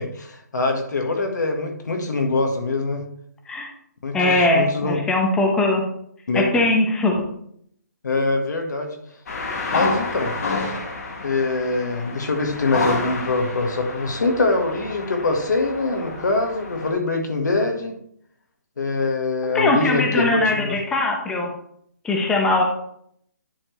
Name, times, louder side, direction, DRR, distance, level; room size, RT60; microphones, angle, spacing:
voice 1, 0.0-3.0 4.0-5.0 6.3-6.5 8.0-8.9 9.7-10.3 11.2-17.9 18.8-20.8, left 3 dB, 75° left, 3 dB, 1.7 m, -23 dB
voice 2, 4.1-5.8 6.3-7.2 19.4-21.5 22.0-22.6, left 2 dB, 5° left, 1 dB, 0.9 m, -20 dB
sound 1, 9.3-16.9, left 3 dB, 60° left, 1.9 m, -29 dB
10.0 x 4.4 x 3.3 m, 0.69 s
hypercardioid pair, 160°, 10 cm